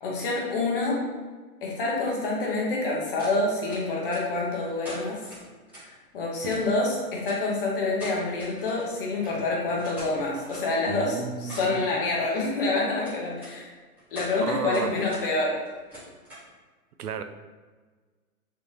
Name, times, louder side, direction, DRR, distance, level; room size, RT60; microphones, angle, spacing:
voice 1, 0.0-1.0 1.6-5.2 5.8-13.7 14.1-15.6, left 2 dB, 35° left, -2 dB, 0.9 m, -27 dB
sound 1, 3.2-3.4 3.7-4.4 4.8-5.8 6.5-6.6 7.2-7.4 7.9-8.9 9.2-9.3 9.6-10.8 11.1-11.8 13.0-13.5 14.0-14.3 14.7-15.2 15.5-16.5, equal, 5° right, 0.7 m, -43 dB
voice 2, 10.9-11.9 14.5-15.0 17.0-17.2, right 7 dB, 85° right, 8 dB, 0.5 m, -33 dB
3.5 x 2.7 x 2.8 m, 1.4 s
hypercardioid pair, 145°, 44 cm